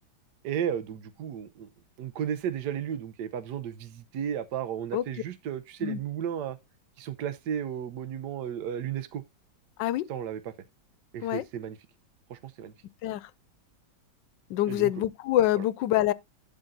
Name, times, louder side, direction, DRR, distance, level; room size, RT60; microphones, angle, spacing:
voice 1, 0.4-1.7 2.0-6.6 7.0-9.2 10.1-10.5 11.1-11.8 12.3-12.7 14.7-15.0 15.5-15.6, right 9 dB, 75° right, 1.4 m, -34 dB
voice 2, 14.5-16.1, left 13 dB, 85° left, 1.3 m, -26 dB
11.5 x 3.9 x 3.9 m
omnidirectional pair, 1.9 m